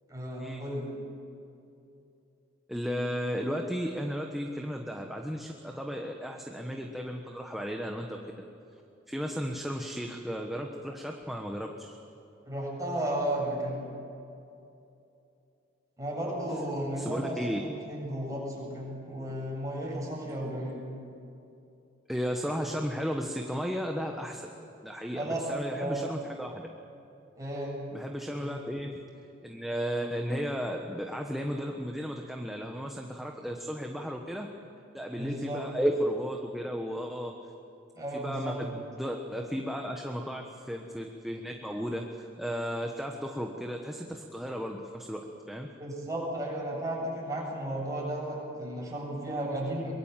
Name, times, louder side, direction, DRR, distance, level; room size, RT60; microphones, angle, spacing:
voice 1, 0.1-0.8 12.4-13.8 16.0-20.8 25.1-25.4 25.7-26.1 27.4-27.8 28.4-28.6 35.2-35.6 37.9-38.6 45.8-49.9, right 1 dB, 15° right, -3 dB, 7.9 m, -34 dB
voice 2, 2.7-8.2 9.1-12.0 17.0-17.6 22.1-24.5 24.8-26.6 27.9-28.9 29.4-34.5 34.9-37.3 38.1-45.2 45.5-45.7, equal, ahead, 1 dB, 1.3 m, -34 dB
23.5 x 22.5 x 7.5 m, 2.7 s
head